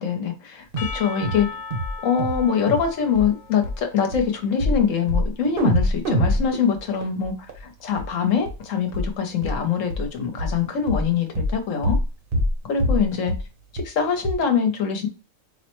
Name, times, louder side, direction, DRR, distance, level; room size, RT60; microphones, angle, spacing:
voice 1, 0.0-1.5 2.0-7.3 7.6-12.0 12.6-13.3 13.7-15.1, left 7 dB, 70° left, 1.1 m, -24 dB
sound 1, 0.7-1.0 1.2-1.4 1.7-2.4 2.7-2.9 3.1-3.3 3.6-3.8 4.1-4.2 4.6-4.8 5.1-5.3 5.6-7.6 8.0-8.1 8.5-8.6 8.9-9.1 9.4-9.6 9.9-10.1 10.4-10.6 10.9-11.1 11.4-11.5 11.8-12.1 12.3-12.5 12.8-13.0 13.3-13.4 13.8-13.9 14.2-14.3, equal, 45° right, 0.9 m, -23 dB
Percussion / Church bell, 0.8-5.1, left 5 dB, 55° left, 0.7 m, -39 dB
4.6 x 2.1 x 3.0 m
omnidirectional pair, 1.4 m